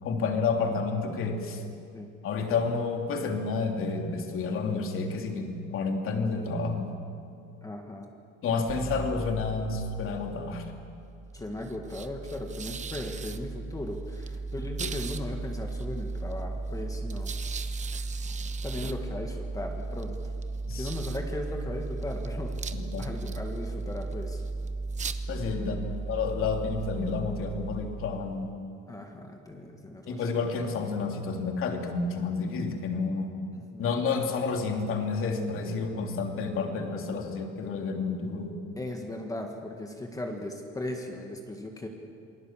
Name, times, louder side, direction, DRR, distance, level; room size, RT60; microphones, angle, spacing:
voice 1, 0.0-1.6 2.2-6.9 8.4-10.7 14.8-14.9 20.7-20.9 22.7-23.1 25.3-28.5 30.1-33.3 33.8-38.5, left 4 dB, 45° left, 3 dB, 3.0 m, -30 dB
voice 2, 7.6-8.1 11.3-17.3 18.1-18.2 18.6-20.2 20.7-22.5 23.0-24.4 25.6-25.9 28.9-30.2 33.5-33.9 38.8-41.9, left 1 dB, 10° left, 2 dB, 1.8 m, -37 dB
sound 1, 8.7-28.6, right 3 dB, 25° right, 0.9 m, -36 dB
28.0 x 20.5 x 7.5 m, 2.4 s
cardioid pair, 155°, 29 cm